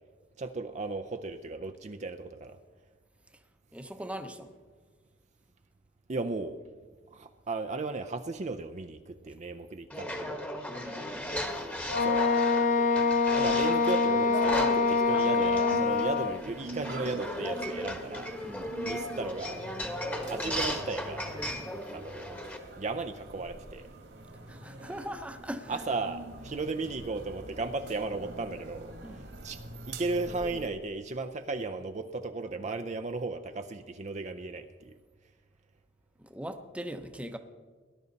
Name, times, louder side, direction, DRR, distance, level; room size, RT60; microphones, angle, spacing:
voice 1, 0.4-2.6 6.1-6.6 7.1-10.5 12.0-12.3 13.4-18.3 18.8-19.7 20.3-21.3 21.9-22.4 22.8-23.9 25.7-34.9, right 3 dB, 40° right, 8 dB, 0.5 m, -35 dB
voice 2, 3.7-4.5 10.7-11.3 18.4-18.8 24.5-25.8 29.0-29.3 36.2-37.4, equal, 5° right, 7 dB, 0.7 m, -40 dB
sound 1, 9.9-22.6, left 1 dB, 10° left, 1.2 m, -36 dB
Wind instrument woodwind instrument, 11.9-16.4, left 4 dB, 40° left, 0.4 m, -25 dB
sound 2, 15.7-30.7, right 2 dB, 65° right, 1.8 m, -45 dB
18.5 x 11.0 x 4.0 m, 1.5 s
head